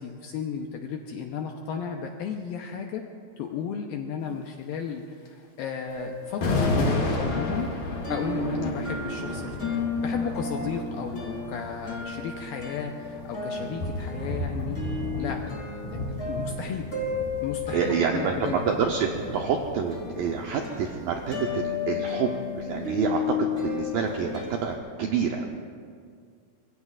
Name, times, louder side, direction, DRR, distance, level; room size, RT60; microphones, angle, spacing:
voice 1, 0.0-3.1 3.4-7.7 8.1-14.8 15.2-15.6 15.9-16.0 16.3-16.9 17.4-18.8, left 7 dB, 80° left, 2 dB, 2.2 m, -34 dB
sound 1, 5.3-5.4 6.4-21.4, left 2 dB, 50° left, 3.2 m, -33 dB
sound 2, 5.9-24.8, left 4 dB, 20° left, 2.7 m, -34 dB
voice 2, 17.7-25.6, right 6 dB, 80° right, 2 dB, 2.0 m, -28 dB
25.5 x 22.0 x 2.5 m, 2.1 s
omnidirectional pair, 5.0 m